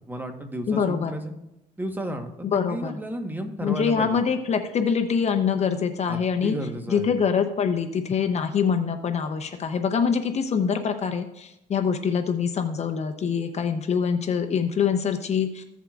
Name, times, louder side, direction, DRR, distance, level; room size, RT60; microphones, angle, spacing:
voice 1, 0.1-1.3 1.8-2.3 2.7-4.2 6.1-7.1, right 1 dB, 10° right, 5 dB, 1.2 m, -33 dB
voice 2, 0.7-1.2 2.4-2.9 3.6-6.5 6.9-15.6, left 6 dB, 40° left, 7 dB, 0.7 m, -24 dB
15.0 x 7.3 x 2.4 m, 0.88 s
cardioid pair, 110°, 17 cm